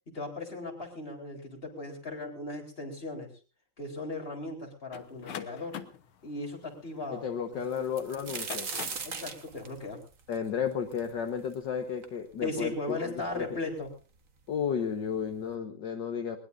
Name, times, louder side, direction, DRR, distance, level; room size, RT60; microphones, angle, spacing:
voice 1, 0.1-3.3 3.8-5.8 6.2-7.6 9.0-10.0 12.4-13.9, left 2 dB, 25° left, 3 dB, 4.2 m, -37 dB
sound 1, 4.9-7.6 8.3-9.2, left 8 dB, 85° left, 2.1 m, -43 dB
voice 2, 7.1-8.7 10.3-13.5 14.5-16.4, left 7 dB, 60° left, 5 dB, 1.9 m, -33 dB
sound 2, 7.7-11.5 12.0-12.1 12.9-13.0 13.3-13.9 14.8-14.9 15.3-15.5, right 5 dB, 40° right, 1.7 m, -39 dB
21.0 x 20.5 x 2.6 m, 0.34 s
omnidirectional pair, 2.3 m